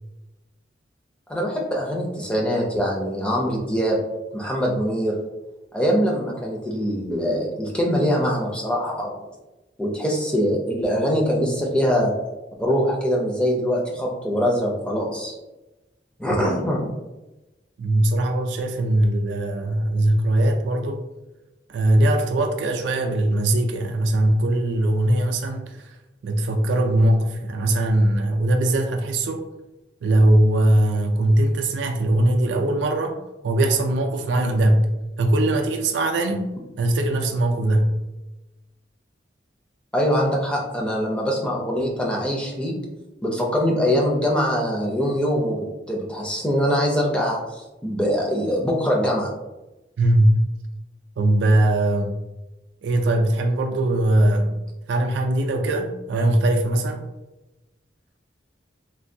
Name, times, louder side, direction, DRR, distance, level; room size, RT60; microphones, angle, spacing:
voice 1, 1.3-4.0 4.3-5.2 5.7-9.2 9.8-12.1 12.6-15.4 16.2-16.9 39.9-42.7 43.2-49.3, equal, 5° left, -2 dB, 0.4 m, -23 dB
voice 2, 17.8-21.0 21.7-25.9 26.2-29.4 30.0-33.2 33.4-34.9 35.2-36.5 36.8-38.0 50.0-50.4 51.2-52.2 52.8-54.6 54.9-57.0, right 1 dB, 75° right, 4 dB, 0.3 m, -20 dB
3.3 x 2.2 x 2.6 m, 1.0 s
head